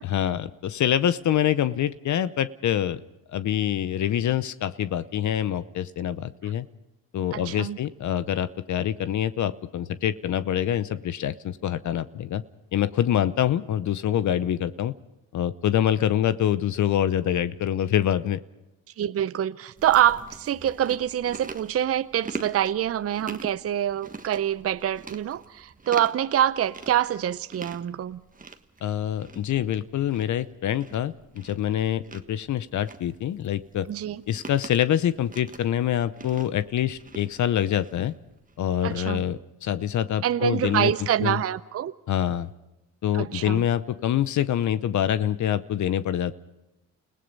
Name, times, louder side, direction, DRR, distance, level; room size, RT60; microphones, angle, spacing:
voice 1, 0.0-3.0 3.3-6.7 7.1-12.4 12.7-14.9 15.3-18.4 28.8-33.9 34.3-38.1 38.6-40.9 41.2-41.4 42.1-42.5 43.0-46.3, left 10 dB, 60° left, 15 dB, 0.8 m, -25 dB
voice 2, 7.3-7.8 19.0-28.2 33.9-34.2 38.8-39.2 40.2-41.9 43.1-43.6, right 11 dB, 45° right, 14 dB, 0.7 m, -25 dB
Chewing mastication, 19.8-38.7, right 4 dB, 25° right, 1.5 m, -44 dB
29.5 x 17.0 x 5.4 m, 0.96 s
supercardioid pair, 70°, 34 cm